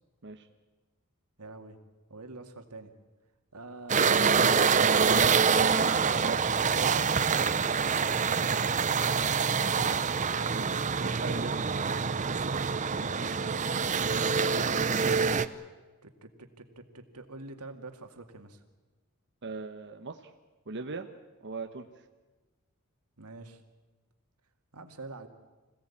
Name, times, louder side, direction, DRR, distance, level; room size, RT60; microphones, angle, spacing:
voice 1, 1.4-1.8 2.1-2.9 3.5-4.6 10.4-10.8 13.0-14.4 16.0-18.6 23.2-23.6 24.7-25.3, right 2 dB, 90° right, 6 dB, 2.3 m, -46 dB
sound 1, 3.9-15.5, right 5 dB, 35° right, 0.7 m, -26 dB
voice 2, 7.7-8.0 10.5-11.6 19.4-20.3 20.7-21.1 21.4-21.9, right 3 dB, 55° right, 5 dB, 1.1 m, -40 dB
26.0 x 17.0 x 8.6 m, 1.2 s
head